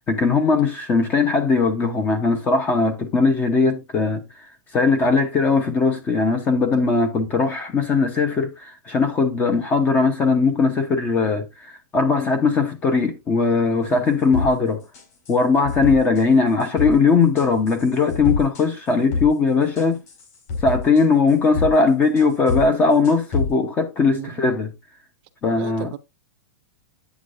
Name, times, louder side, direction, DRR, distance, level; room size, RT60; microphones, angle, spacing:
voice 1, 0.1-4.2 4.7-14.8 15.3-20.0 20.6-24.7 25.4-25.9, left 4 dB, 15° left, 0.8 m, -19 dB
sound 1, 14.3-14.5 14.9-15.3 15.6-16.2 16.6-16.9 17.4-19.3 19.6-21.7 22.2-22.7 22.9-23.5, left 4 dB, 45° left, 4.5 m, -26 dB
voice 2, 24.1-24.5 25.6-26.0, right 13 dB, 35° right, 0.7 m, -35 dB
8.4 x 8.2 x 2.5 m
supercardioid pair, 175°, 11 cm